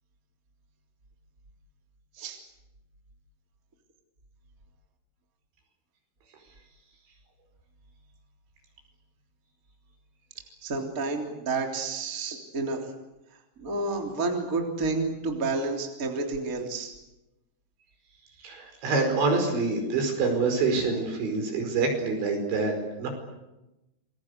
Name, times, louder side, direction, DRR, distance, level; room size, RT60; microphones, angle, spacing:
voice 1, 10.6-12.8 13.6-16.9, right 3 dB, 20° right, 2 dB, 3.2 m, -30 dB
voice 2, 18.4-23.1, right 3 dB, 70° right, 4 dB, 7.3 m, -26 dB
28.0 x 21.5 x 8.2 m, 0.99 s
omnidirectional pair, 5.4 m